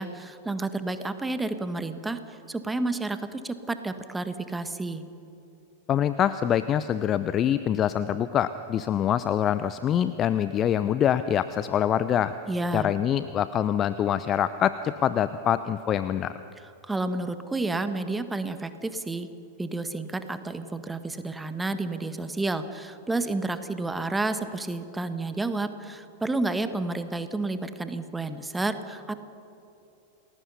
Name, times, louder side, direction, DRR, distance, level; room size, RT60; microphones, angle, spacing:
voice 1, 0.0-2.2 2.5-5.0 12.5-12.9 16.8-19.3 19.6-29.1, right 2 dB, 10° right, 10 dB, 1.5 m, -30 dB
voice 2, 5.9-12.3 12.7-16.3, left 10 dB, 30° left, 13 dB, 0.6 m, -25 dB
29.5 x 20.5 x 5.6 m, 2.9 s
figure-of-eight pair, 90°, 0 cm